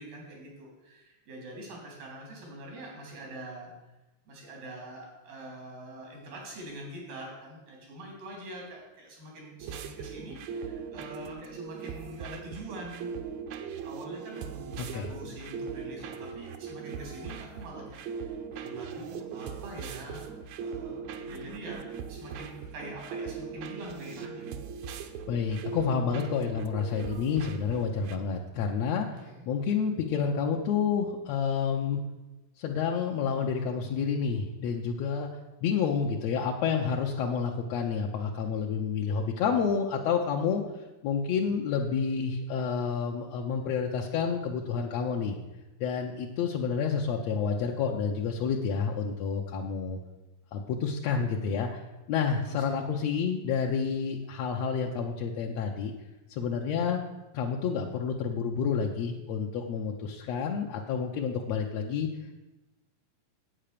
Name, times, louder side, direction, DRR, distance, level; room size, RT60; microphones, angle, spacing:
voice 1, 0.0-3.7 4.3-13.1 13.8-24.6 29.0-29.5 52.5-52.6, right 1 dB, 90° right, -1 dB, 4.9 m, -44 dB
sound 1, 9.6-28.2, right 6 dB, 75° right, 1.7 m, -40 dB
voice 2, 25.3-32.0 32.6-35.3 35.6-40.6 41.0-45.4 45.8-50.0 50.5-51.8 52.1-55.9 56.3-57.0 57.3-62.1, left 6 dB, 75° left, 0 dB, 1.6 m, -29 dB
8.9 x 8.6 x 6.7 m, 1.1 s
omnidirectional pair, 3.9 m